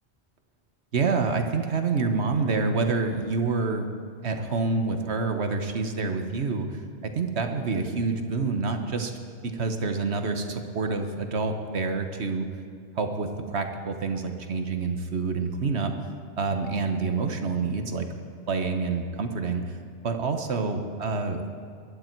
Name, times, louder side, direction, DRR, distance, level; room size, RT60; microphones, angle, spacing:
voice 1, 0.9-3.9 4.2-9.1 9.4-12.5 13.0-15.9 16.4-18.1 18.5-19.8 20.0-21.4, right 4 dB, 70° right, 6 dB, 1.4 m, -27 dB
21.0 x 11.5 x 4.6 m, 2.3 s
omnidirectional pair, 1.1 m